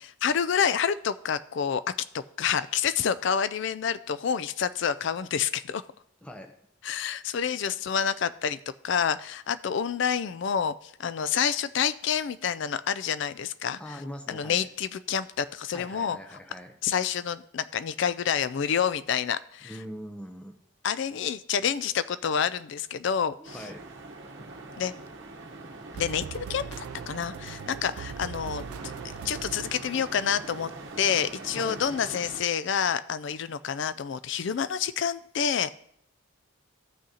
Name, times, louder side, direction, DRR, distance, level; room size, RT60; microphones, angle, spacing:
voice 1, 0.0-1.8 2.1-5.8 6.8-8.6 8.8-13.8 14.3-16.2 16.8-19.7 20.8-23.6 24.8-24.9 25.9-28.6 29.2-30.7 31.0-35.8, left 7 dB, 55° left, 15 dB, 0.3 m, -28 dB
voice 2, 6.2-6.5 13.8-14.7 15.7-16.7 19.6-20.5 23.4-23.8 31.6-31.8, equal, 5° left, 5 dB, 0.5 m, -42 dB
sound 1, 23.4-32.4, right 2 dB, 60° right, 0.9 m, -43 dB
sound 2, 25.9-30.1, right 7 dB, 90° right, 0.3 m, -41 dB
15.0 x 6.2 x 2.8 m, 0.72 s
head